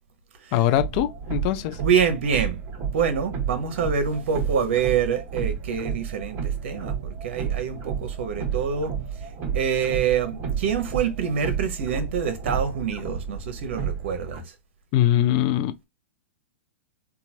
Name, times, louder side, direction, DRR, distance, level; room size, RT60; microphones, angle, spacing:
voice 1, 0.5-1.8 14.9-15.8, left 12 dB, 45° left, 0.4 m, -22 dB
sound 1, 0.7-14.4, right 7 dB, 35° right, 1.2 m, -31 dB
voice 2, 1.8-2.6 2.9-8.9 9.5-14.4, right 7 dB, 65° right, 0.9 m, -26 dB
2.8 x 2.4 x 2.7 m
hypercardioid pair, 115°, 7 cm